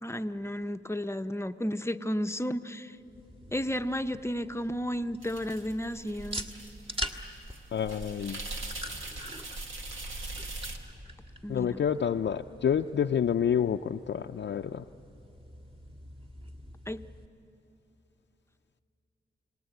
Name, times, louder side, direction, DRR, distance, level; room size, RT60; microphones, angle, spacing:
voice 1, 0.0-2.9 3.5-6.5 11.4-11.8 16.9-17.0, equal, 15° left, 9 dB, 0.7 m, -33 dB
sound 1, 3.0-17.3, equal, 30° right, 1.7 m, -45 dB
sound 2, 5.2-10.8, right 2 dB, 85° right, 1.8 m, -41 dB
voice 2, 7.7-8.4 11.5-14.8, left 8 dB, 65° left, 5 dB, 0.5 m, -28 dB
29.5 x 19.0 x 8.1 m, 2.9 s
cardioid pair, 55°, 20 cm